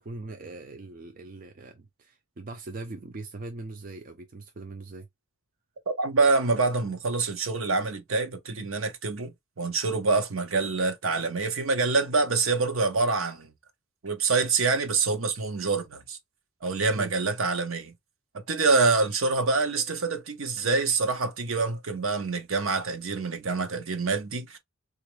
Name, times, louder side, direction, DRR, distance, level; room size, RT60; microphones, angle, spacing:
voice 1, 0.0-5.1 10.5-10.6 17.0-17.2, right 2 dB, 40° right, 0.4 m, -41 dB
voice 2, 5.9-9.3 9.6-13.5 14.0-16.2 16.6-17.9 18.5-24.6, right 4 dB, 65° right, 0.8 m, -26 dB
3.9 x 2.5 x 3.0 m
head